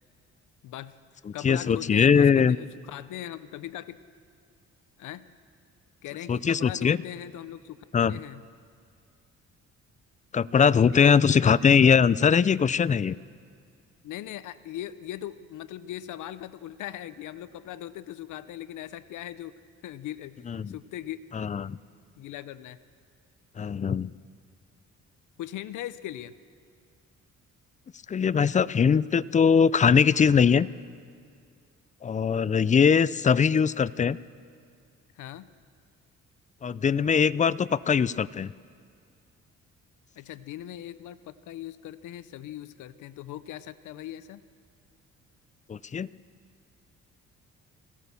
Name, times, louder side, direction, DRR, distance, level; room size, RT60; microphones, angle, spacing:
voice 1, 0.6-1.0 1.3-4.0 5.0-5.3 6.0-8.4 10.9-11.5 14.0-19.5 19.8-21.2 22.2-22.8 25.4-26.3 35.2-35.5 40.2-44.4, left 12 dB, 80° left, 14 dB, 0.7 m, -39 dB
voice 2, 1.4-2.6 6.3-7.0 7.9-8.2 10.3-13.2 20.5-20.7 21.3-21.8 23.6-24.1 28.1-30.7 32.0-34.2 36.6-38.5 45.7-46.1, left 6 dB, 25° left, 19 dB, 0.4 m, -21 dB
23.5 x 16.0 x 6.9 m, 2.2 s
cardioid pair, 90°, 30 cm